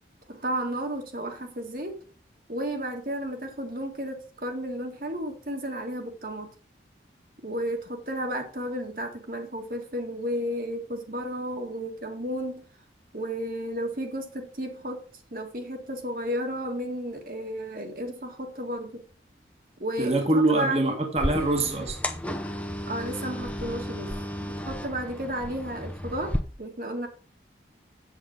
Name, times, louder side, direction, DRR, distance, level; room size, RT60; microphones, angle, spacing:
voice 1, 0.3-2.0 2.5-6.5 7.4-12.6 13.1-15.0 15.3-19.0 19.8-21.0 22.9-27.1, equal, 50° right, 1.9 m, -33 dB
voice 2, 20.0-22.0, right 2 dB, 35° right, 1.5 m, -24 dB
sound 1, 21.2-26.4, equal, 10° left, 0.8 m, -33 dB
8.5 x 7.9 x 3.7 m
head